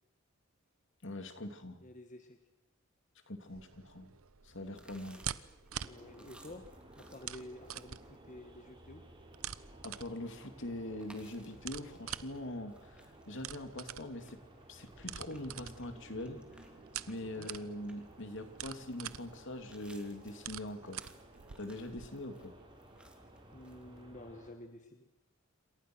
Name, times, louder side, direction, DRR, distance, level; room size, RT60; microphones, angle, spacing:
voice 1, 1.0-1.8 3.3-4.1 4.4-5.2 9.8-14.4 14.7-16.6 17.1-21.1 21.6-22.5, left 1 dB, 60° left, 7 dB, 2.9 m, -43 dB
voice 2, 1.8-2.4 5.8-6.6 7.0-9.0 17.4-17.5 23.5-25.1, left 1 dB, 35° left, 6 dB, 1.6 m, -50 dB
sound 1, 3.5-22.1, right 10 dB, 75° right, 0.9 m, -47 dB
sound 2, 4.4-24.0, right 1 dB, 5° right, 2.9 m, -63 dB
sound 3, 5.7-24.5, right 1 dB, 25° right, 4.4 m, -57 dB
28.0 x 27.0 x 6.4 m, 0.91 s
head